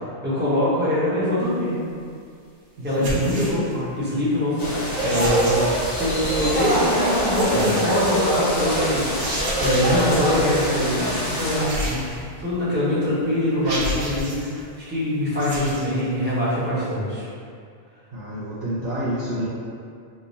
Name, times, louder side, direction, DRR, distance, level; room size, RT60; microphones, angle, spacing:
voice 1, 0.2-1.7 2.8-3.5 4.0-5.6 6.0-11.7 12.4-17.2, left 1 dB, 10° right, -10 dB, 0.9 m, -23 dB
voice 2, 2.8-3.9 11.8-12.2 18.1-19.5, equal, 55° right, -10 dB, 0.7 m, -29 dB
sound 1, 2.9-3.7 4.9-5.8 7.2-8.1 9.1-10.1 11.6-12.5 13.1-13.2 13.6-14.5 15.3-15.9, right 1 dB, 80° right, 1.0 m, -31 dB
sound 2, 4.6-11.6, equal, 40° left, 1.0 m, -24 dB
3.5 x 2.1 x 4.0 m, 2.3 s
omnidirectional pair, 1.2 m